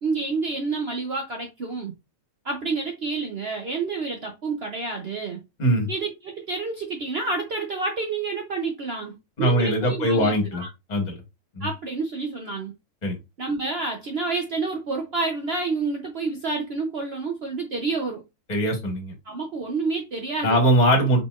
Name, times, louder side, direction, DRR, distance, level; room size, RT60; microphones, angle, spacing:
voice 1, 0.0-2.0 2.4-5.4 5.9-10.7 11.6-12.7 13.4-18.2 19.2-20.6, right 3 dB, 55° right, 0.8 m, -29 dB
voice 2, 9.4-10.6 10.9-11.2 11.5-11.7 13.0-13.2 18.5-19.1 20.4-21.2, equal, 30° left, 1.4 m, -21 dB
3.9 x 3.9 x 2.4 m
omnidirectional pair, 1.6 m